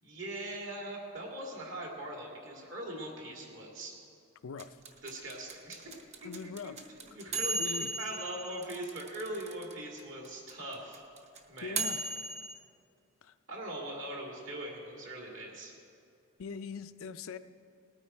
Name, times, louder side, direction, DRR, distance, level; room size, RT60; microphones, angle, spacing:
voice 1, 0.0-4.0 5.0-5.9 6.2-11.0 11.5-11.9 13.5-15.7, right 1 dB, 65° right, -1 dB, 2.3 m, -41 dB
voice 2, 4.4-4.8 6.2-6.8 7.2-7.9 11.6-12.0 13.2-13.3 16.4-17.4, left 4 dB, 80° left, 11 dB, 0.5 m, -42 dB
sound 1, 4.6-9.7 10.0-10.1 10.2-12.6, right 2 dB, 30° right, 0.7 m, -36 dB
19.0 x 9.0 x 4.3 m, 2.4 s
head